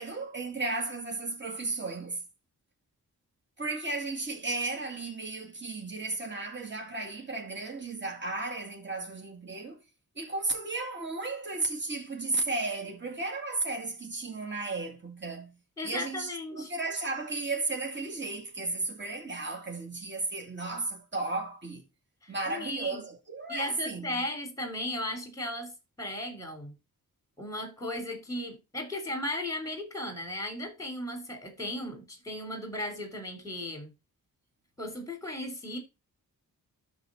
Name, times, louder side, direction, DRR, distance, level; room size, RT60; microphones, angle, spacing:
voice 1, 0.0-2.2 3.6-9.8 10.2-15.5 15.8-21.8 22.3-24.2, right 3 dB, 30° right, 2.3 m, -34 dB
voice 2, 15.8-16.7 22.2-23.0 23.5-25.7 26.0-26.7 27.4-33.9 34.8-35.8, left 1 dB, 10° left, 3.4 m, -36 dB
12.5 x 4.1 x 4.0 m
cardioid pair, 65°, 36 cm